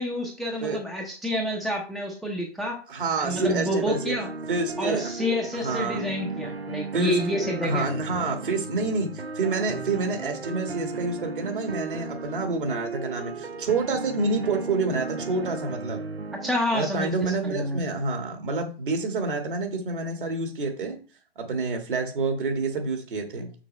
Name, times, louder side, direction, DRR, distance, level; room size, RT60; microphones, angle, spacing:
voice 1, 0.0-2.8 3.2-4.3 4.8-7.9 16.4-17.8, left 1 dB, ahead, 1 dB, 0.7 m, -28 dB
voice 2, 2.9-4.1 4.5-5.1 5.5-6.0 6.9-7.2 7.6-16.0 16.7-21.0 21.4-23.5, right 3 dB, 55° right, 5 dB, 1.8 m, -28 dB
sound 1, 3.3-16.5, right 3 dB, 80° right, 0.9 m, -35 dB
6.4 x 4.8 x 4.4 m, 0.39 s
figure-of-eight pair, 120°, 30 cm